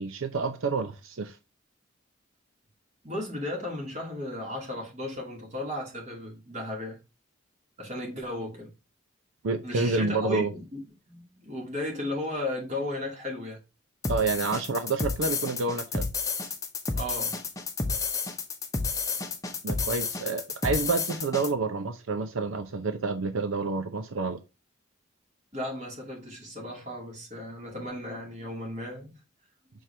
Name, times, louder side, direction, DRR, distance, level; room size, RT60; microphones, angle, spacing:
voice 1, 0.0-1.4 9.4-10.5 14.1-16.1 19.6-24.4, right 3 dB, 80° right, 0.6 m, -28 dB
voice 2, 3.0-7.0 7.8-8.7 9.6-10.8 11.1-13.6 16.9-17.4 17.9-18.0 25.5-29.1, left 1 dB, 35° right, 2.6 m, -35 dB
sound 1, 14.0-21.5, left 4 dB, 15° left, 0.9 m, -31 dB
6.4 x 4.5 x 3.3 m
head